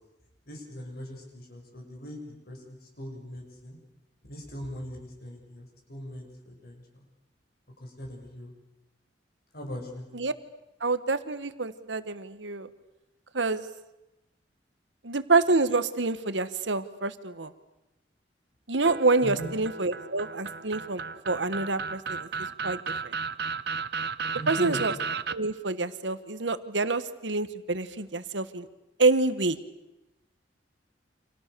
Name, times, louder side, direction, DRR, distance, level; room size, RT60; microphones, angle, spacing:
voice 1, 0.5-2.2 2.5-3.8 4.2-6.8 7.8-8.5 9.5-10.1 19.2-19.5 24.3-24.8, equal, 60° left, 2 dB, 7.3 m, -40 dB
voice 2, 10.8-12.7 13.3-13.7 15.0-17.5 18.7-22.3 22.6-23.1 24.5-24.9 25.3-28.7 29.0-29.6, right 3 dB, 90° right, 12 dB, 1.5 m, -27 dB
sound 1, 18.8-25.3, right 5 dB, 60° right, 0.9 m, -34 dB
30.0 x 27.0 x 7.0 m, 0.95 s
head